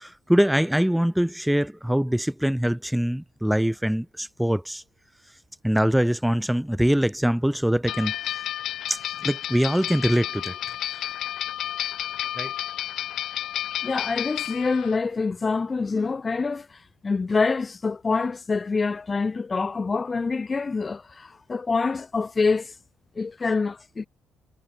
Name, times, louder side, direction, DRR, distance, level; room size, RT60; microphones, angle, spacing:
voice 1, 0.0-4.8 5.6-8.4 8.9-10.6 12.4-12.5, equal, 5° right, 1.5 m, -23 dB
sound 1, 7.9-15.0, left 12 dB, 80° left, 4.0 m, -31 dB
voice 2, 13.8-22.8 23.2-24.1, left 4 dB, 30° left, 1.0 m, -26 dB
cardioid pair, 90°, 0 cm